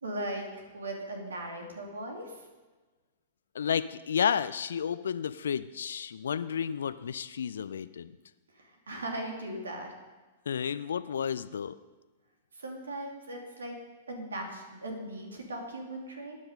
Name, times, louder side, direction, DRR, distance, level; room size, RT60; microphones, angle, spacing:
voice 1, 0.0-2.4 8.5-9.9 12.5-13.7 14.1-16.4, right 1 dB, 75° right, 2 dB, 2.6 m, -38 dB
voice 2, 3.5-8.1 10.5-11.8, left 7 dB, 70° left, 15 dB, 0.4 m, -31 dB
14.5 x 9.8 x 5.3 m, 1.3 s
figure-of-eight pair, 105°, 0 cm